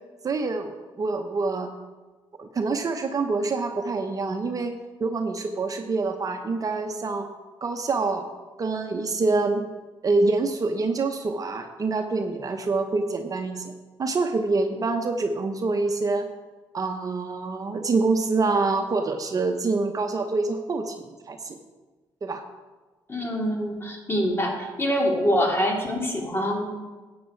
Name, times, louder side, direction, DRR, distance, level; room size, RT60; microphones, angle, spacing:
voice 1, 0.2-1.7 2.4-7.3 7.6-8.3 8.6-9.6 10.0-13.7 14.0-16.3 16.7-21.6 22.2-22.4, right 3 dB, 40° right, 5 dB, 0.9 m, -26 dB
voice 2, 23.1-26.7, equal, 25° left, 1 dB, 2.6 m, -25 dB
12.5 x 8.7 x 4.5 m, 1.3 s
cardioid pair, 85°, 9 cm